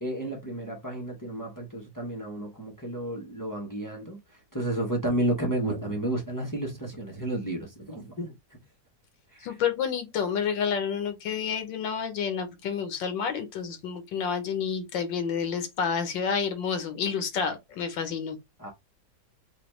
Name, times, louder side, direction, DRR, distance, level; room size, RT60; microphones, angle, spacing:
voice 1, 0.0-4.2 4.5-8.6 9.3-9.5 18.6-18.7, right 1 dB, 25° left, 0.4 m, -32 dB
voice 2, 9.4-18.4, left 7 dB, 80° left, 1.6 m, -29 dB
4.9 x 2.3 x 3.1 m
omnidirectional pair, 2.0 m